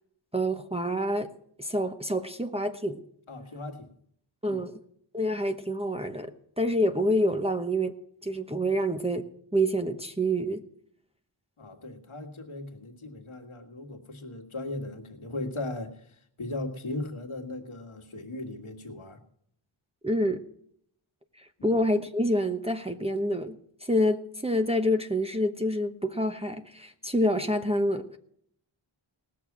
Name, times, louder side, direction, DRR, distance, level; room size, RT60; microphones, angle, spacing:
voice 1, 0.3-1.3 1.6-3.0 4.4-4.7 5.1-8.0 8.2-9.2 9.5-10.6 20.0-20.4 21.4-28.1, equal, 10° right, 4 dB, 0.9 m, -27 dB
voice 2, 3.3-3.9 4.5-4.6 11.6-19.2 21.6-21.8, left 2 dB, 80° left, 3 dB, 1.9 m, -38 dB
19.0 x 6.8 x 6.0 m, 0.67 s
wide cardioid pair, 65°, 48 cm